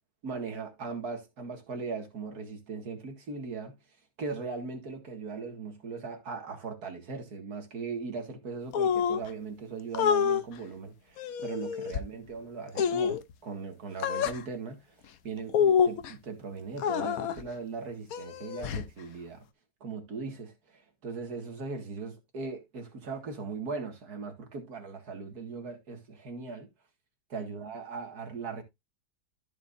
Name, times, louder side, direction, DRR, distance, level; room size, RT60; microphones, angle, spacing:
voice 1, 0.2-3.7 4.2-15.0 15.2-19.4 19.8-26.7 27.3-28.6, right 4 dB, 65° right, 2.4 m, -39 dB
sound 1, 8.7-9.3 9.9-10.4 11.2-12.0 12.8-13.2 14.0-14.4 15.5-16.1 16.8-17.4 18.1-18.9, left 7 dB, 65° left, 1.1 m, -27 dB
14.0 x 5.6 x 2.6 m
omnidirectional pair, 1.8 m